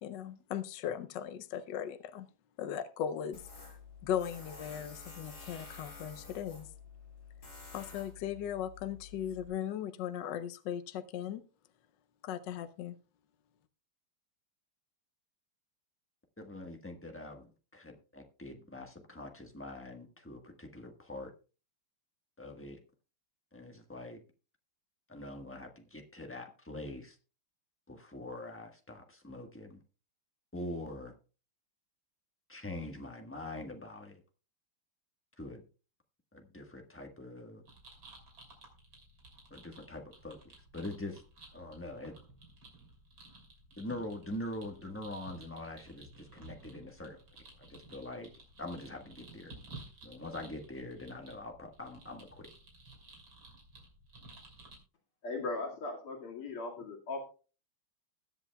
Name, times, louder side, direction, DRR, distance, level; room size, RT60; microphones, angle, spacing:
voice 1, 0.0-2.3 2.6-6.7 7.7-11.4 12.2-13.0, left 9 dB, 70° left, 1.2 m, -38 dB
Tools, 3.3-9.5, left 4 dB, 45° left, 6.3 m, -50 dB
voice 2, 16.4-21.3 22.4-22.8 23.5-24.2 25.1-27.2 27.9-29.8 30.5-31.1 32.5-34.2 35.4-35.6 36.3-37.6 39.5-40.4 40.7-41.2 41.5-42.1 43.8-47.2 47.6-48.3 48.6-49.5 50.0-52.5, left 1 dB, 10° left, 0.9 m, -44 dB
sound 1, 37.6-54.8, right 2 dB, 60° right, 3.9 m, -55 dB
voice 3, 55.2-57.2, left 3 dB, 85° left, 3.1 m, -38 dB
20.5 x 8.1 x 2.3 m
omnidirectional pair, 2.4 m